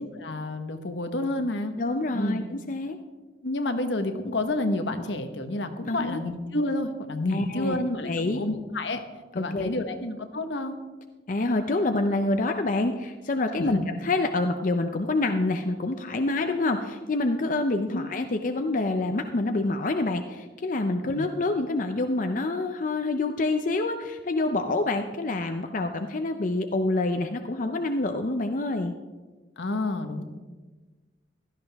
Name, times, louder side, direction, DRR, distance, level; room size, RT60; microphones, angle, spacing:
voice 1, 0.0-1.7 2.1-2.4 3.4-9.0 9.3-10.8 13.6-13.8 17.9-18.1 21.0-21.3 29.6-30.2, left 2 dB, 75° left, 7 dB, 1.2 m, -29 dB
voice 2, 1.8-3.0 5.9-6.2 7.3-7.8 8.0-8.4 9.3-10.0 11.3-28.9, left 2 dB, 45° left, 6 dB, 0.6 m, -27 dB
16.0 x 13.0 x 3.5 m, 1.3 s
head